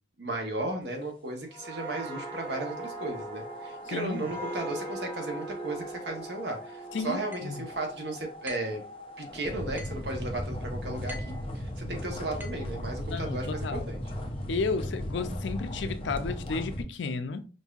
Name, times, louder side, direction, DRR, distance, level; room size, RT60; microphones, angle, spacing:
voice 1, 0.2-8.8 9.2-14.0, right 2 dB, 65° right, 1.0 m, -35 dB
sound 1, 1.5-9.0 9.4-9.6, right 2 dB, 10° left, 1.3 m, -40 dB
sound 2, 2.4-16.8, left 1 dB, 30° left, 0.6 m, -38 dB
voice 2, 3.9-4.3 6.9-7.7 13.1-13.9 14.5-17.5, left 4 dB, 75° left, 0.5 m, -33 dB
sound 3, 7.3-7.6 8.5-8.8 9.8-10.1 11.1-11.4 12.4-12.7, left 1 dB, 10° right, 0.6 m, -44 dB
5.3 x 2.6 x 2.4 m
head